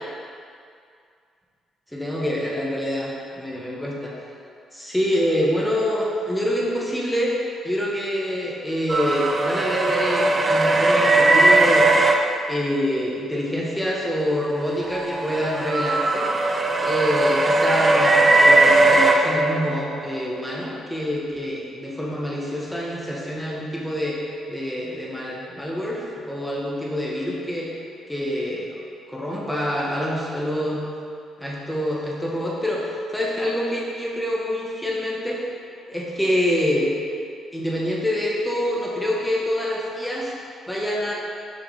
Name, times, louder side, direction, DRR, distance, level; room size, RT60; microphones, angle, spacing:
voice 1, 1.9-4.1 4.7-7.3 7.6-12.1 12.5-16.3 16.8-24.2 24.5-27.7 28.1-28.8 29.1-30.8 31.4-35.4 35.9-36.9 37.5-40.3 40.7-41.1, equal, 5° left, -4 dB, 1.4 m, -26 dB
sound 1, 8.9-12.2 14.6-20.1, right 2 dB, 30° right, 0.5 m, -18 dB
7.2 x 4.8 x 3.5 m, 2.3 s
cardioid pair, 90°, 0 cm